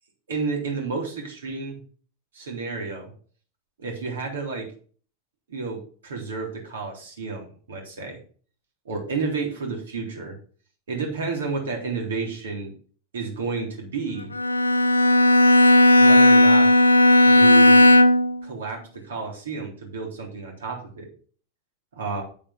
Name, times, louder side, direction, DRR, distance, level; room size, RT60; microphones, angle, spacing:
voice 1, 0.3-1.8 2.3-3.1 3.8-4.7 5.5-8.2 8.9-10.3 10.9-12.7 13.1-14.3 16.0-16.7 17.3-17.9 18.4-21.1 22.0-22.2, right 4 dB, 65° right, 1 dB, 3.4 m, -31 dB
Bowed string instrument, 14.3-18.4, left 1 dB, 80° left, 0.5 m, -15 dB
9.0 x 8.4 x 3.6 m, 0.43 s
figure-of-eight pair, 90°, 0 cm